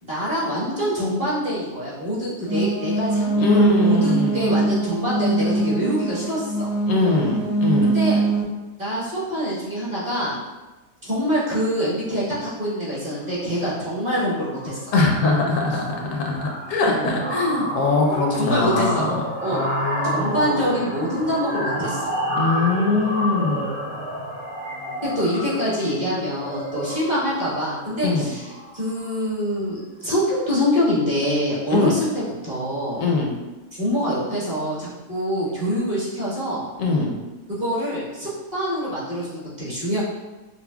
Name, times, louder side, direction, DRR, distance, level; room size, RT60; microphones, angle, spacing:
voice 1, 0.0-6.7 7.8-8.2 8.8-10.3 11.0-14.8 18.4-19.1 19.4-19.6 20.0-22.1 25.0-33.0 33.7-36.6 37.5-40.0, equal, 35° right, -10 dB, 1.3 m, -25 dB
sound 1, 2.4-8.4, right 2 dB, 20° right, 0.9 m, -22 dB
voice 2, 3.4-4.5 6.9-7.9 14.9-19.2 19.5-20.5 22.4-23.8 28.0-28.3 31.7-32.0 33.0-33.3 36.8-37.1, left 3 dB, 75° left, 0 dB, 0.9 m, -22 dB
sound 2, 13.3-13.6 13.9-14.1 14.4-29.3, equal, 60° right, 1.1 m, -30 dB
5.5 x 2.1 x 2.2 m, 1.1 s
omnidirectional pair, 1.4 m